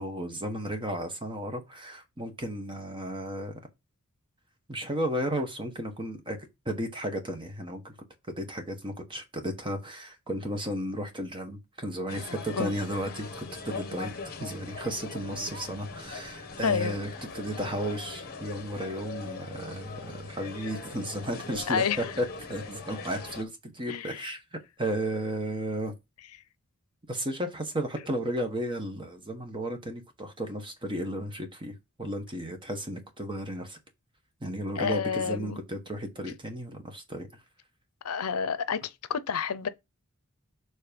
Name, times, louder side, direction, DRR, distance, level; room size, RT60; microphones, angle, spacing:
voice 1, 0.0-3.6 4.7-7.9 8.3-14.1 14.4-25.9 27.1-33.8 34.4-37.3, right 1 dB, 20° right, 1.3 m, -34 dB
sound 1, 12.1-23.4, left 4 dB, 45° left, 1.4 m, -41 dB
voice 2, 16.6-17.0 21.7-22.1 23.9-24.3 34.8-35.6 38.0-39.7, left 6 dB, 80° left, 0.6 m, -29 dB
7.2 x 3.3 x 5.2 m
head